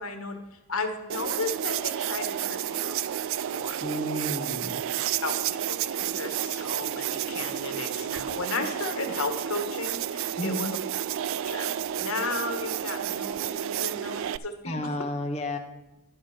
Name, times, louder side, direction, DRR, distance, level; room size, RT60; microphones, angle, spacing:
voice 1, 0.0-3.0 3.4-3.8 5.2-10.8 11.5-11.7 11.9-14.9, left 3 dB, 70° left, 7 dB, 1.4 m, -34 dB
sound 1, 1.1-14.4, right 10 dB, 65° right, 0.3 m, -31 dB
voice 2, 3.8-4.7 10.4-10.7 14.7-15.6, equal, 30° left, 4 dB, 0.8 m, -31 dB
11.5 x 5.2 x 7.0 m, 1.0 s
head